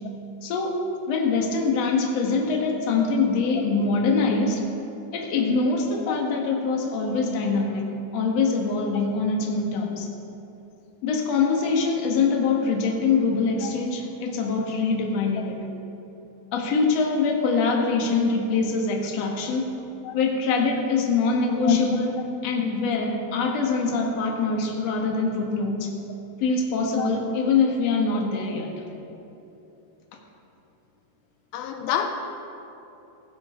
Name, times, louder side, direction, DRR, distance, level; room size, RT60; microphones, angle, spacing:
voice 1, 0.4-0.8 1.1-4.6 5.1-7.8 8.1-10.1 11.0-15.6 16.5-19.7 20.1-22.1 22.4-25.9 26.4-28.7, left 4 dB, 50° left, 0 dB, 2.4 m, -24 dB
voice 2, 31.5-32.1, left 11 dB, 85° left, 6 dB, 2.5 m, -26 dB
17.0 x 16.0 x 3.8 m, 2.9 s
omnidirectional pair, 4.3 m